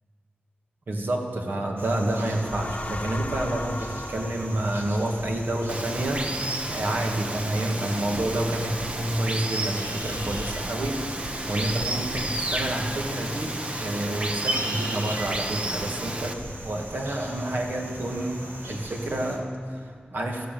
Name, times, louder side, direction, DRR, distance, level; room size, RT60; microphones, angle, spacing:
voice 1, 0.9-6.4 6.7-11.0 11.5-16.4 16.6-18.4 18.7-20.5, right 1 dB, 65° right, 1 dB, 2.0 m, -29 dB
sound 1, 1.8-19.4, right 1 dB, 90° right, 2.1 m, -38 dB
sound 2, 2.0-5.5, left 2 dB, 40° left, 1.0 m, -38 dB
Water, 5.7-16.3, right 1 dB, 30° right, 1.0 m, -32 dB
14.5 x 13.0 x 7.7 m, 2.2 s
wide cardioid pair, 95°, 4 cm